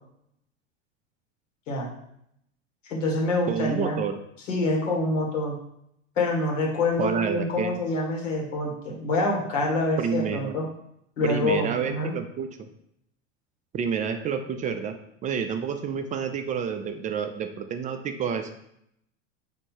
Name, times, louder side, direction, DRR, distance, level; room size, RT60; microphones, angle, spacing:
voice 1, 2.9-4.0 4.5-5.6 6.2-10.6 11.2-12.1, left 2 dB, 75° left, -2 dB, 1.7 m, -26 dB
voice 2, 3.5-4.2 7.0-7.7 10.0-10.6 11.2-12.7 13.7-15.0 15.2-18.5, right 7 dB, 20° right, 7 dB, 0.3 m, -29 dB
4.4 x 2.7 x 4.5 m, 0.75 s
hypercardioid pair, 90°, 38 cm